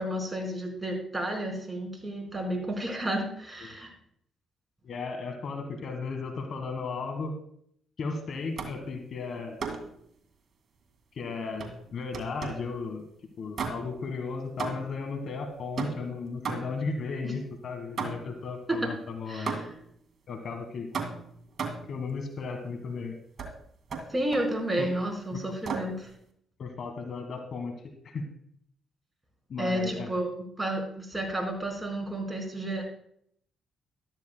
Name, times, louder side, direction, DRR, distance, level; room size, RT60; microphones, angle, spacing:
voice 1, 0.0-3.9 17.2-17.3 18.7-18.9 19.3-19.7 24.1-26.1 29.6-32.8, right 1 dB, 15° right, 1 dB, 4.4 m, -31 dB
voice 2, 4.8-7.4 8.0-9.6 11.1-13.0 13.4-19.6 20.3-20.9 21.9-23.1 24.8-24.9 25.3-25.4 26.6-27.7 28.0-28.2 29.5-30.1, left 4 dB, 60° left, 6 dB, 1.4 m, -35 dB
sound 1, 8.6-8.9 9.6-10.0 11.6-12.7 13.5-14.1 14.6-15.1 15.8-16.9 18.0-18.4 19.5-19.9 20.9-22.0 23.4-23.6 23.9-24.6 25.6-26.0, right 5 dB, 55° right, 2.0 m, -35 dB
14.0 x 12.0 x 2.2 m, 0.68 s
supercardioid pair, 60°, 0 cm